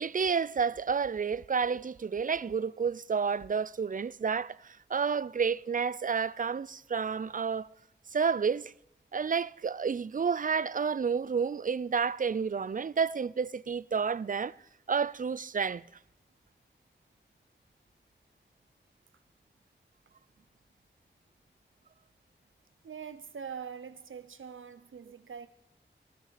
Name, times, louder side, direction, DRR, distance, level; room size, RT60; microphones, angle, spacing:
voice 1, 0.0-7.7 8.1-8.7 9.1-14.5 14.9-15.8, right 6 dB, 45° right, 0.4 m, -30 dB
voice 2, 22.8-25.5, right 7 dB, 90° right, 0.8 m, -43 dB
15.5 x 13.5 x 4.2 m
wide cardioid pair, 50°, 20 cm